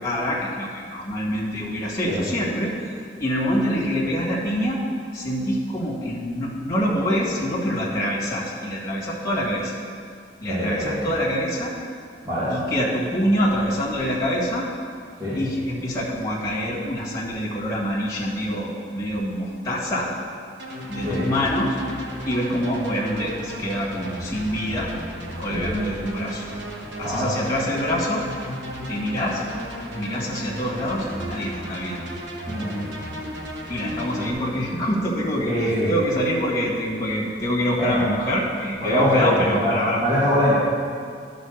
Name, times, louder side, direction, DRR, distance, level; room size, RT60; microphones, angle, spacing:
voice 1, 0.0-2.7 3.2-4.8 5.1-9.8 10.4-11.7 12.5-14.7 15.3-20.1 20.9-21.8 22.2-24.9 25.4-26.4 27.0-28.2 28.9-29.4 29.9-32.0 33.7-40.0, equal, 20° left, -6 dB, 1.8 m, -25 dB
voice 2, 10.5-11.0 12.2-12.5 15.2-15.4 21.0-21.2 25.5-25.6 27.0-27.2 32.5-32.7 35.5-35.9 37.8-38.0 38.8-40.5, equal, 25° right, -14 dB, 2.1 m, -23 dB
sound 1, 20.6-34.3, equal, 80° right, 1.2 m, -34 dB
11.5 x 4.0 x 6.4 m, 2.2 s
head